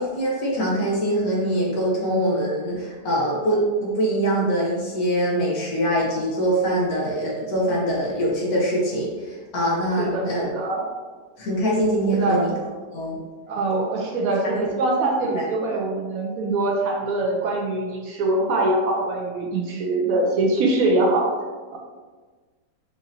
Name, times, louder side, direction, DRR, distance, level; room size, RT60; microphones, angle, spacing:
voice 1, 0.0-10.5 11.4-12.5 12.9-13.2 14.4-14.5 15.3-15.4, right 1 dB, 60° left, -4 dB, 1.2 m, -23 dB
voice 2, 10.0-10.8 12.1-12.4 13.5-21.3, right 2 dB, 80° right, -1 dB, 0.8 m, -23 dB
5.0 x 2.6 x 2.7 m, 1.4 s
omnidirectional pair, 2.0 m